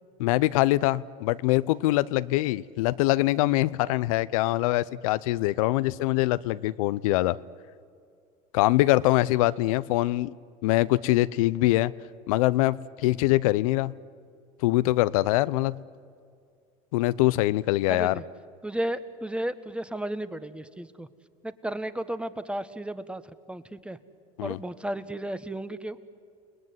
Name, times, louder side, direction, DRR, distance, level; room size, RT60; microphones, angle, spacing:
voice 1, 0.2-7.4 8.5-10.3 10.6-11.9 12.3-13.9 14.6-15.8 16.9-18.2 24.4-24.6, left 18 dB, 80° left, 17 dB, 0.6 m, -23 dB
voice 2, 17.9-18.2 18.6-21.1 21.4-23.2 23.5-24.0 24.4-26.0, right 1 dB, 5° right, 12 dB, 1.4 m, -33 dB
30.0 x 19.5 x 9.6 m, 2.2 s
supercardioid pair, 85°, 17 cm